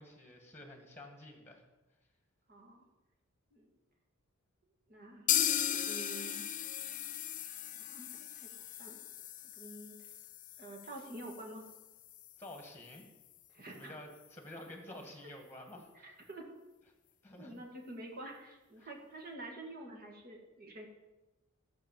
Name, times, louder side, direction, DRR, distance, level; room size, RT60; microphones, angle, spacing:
voice 1, 0.0-1.6 12.4-13.1 13.7-16.2 17.2-17.6 18.8-18.9, left 1 dB, 10° left, 4 dB, 1.8 m, -50 dB
voice 2, 2.5-2.9 3.5-3.7 4.9-5.3 5.7-6.4 7.7-8.5 8.8-9.0 9.6-10.0 10.6-11.7 13.5-13.9 16.0-16.5 17.4-20.9, right 1 dB, 45° right, 1 dB, 2.3 m, -48 dB
sound 1, 5.3-13.0 13.3-13.4 13.7-13.8 14.2-14.3, left 11 dB, 35° left, 0.6 m, -37 dB
15.0 x 6.4 x 7.5 m, 1.1 s
head